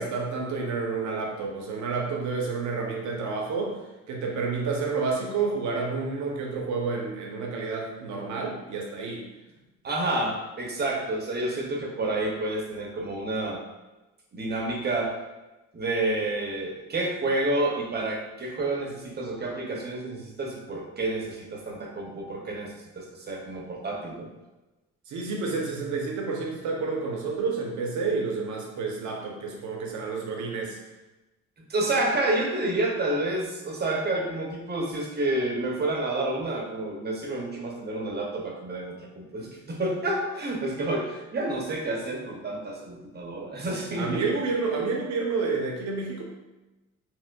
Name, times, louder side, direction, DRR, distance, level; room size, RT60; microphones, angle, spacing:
voice 1, 0.0-3.8 4.1-9.3 25.1-30.8 44.0-46.3, right 4 dB, 70° right, 0 dB, 0.8 m, -29 dB
voice 2, 9.8-13.6 14.3-15.1 15.7-24.3 31.7-44.3, right 2 dB, 35° right, 0 dB, 0.7 m, -29 dB
4.4 x 2.1 x 2.2 m, 1.1 s
cardioid pair, 90°, 30 cm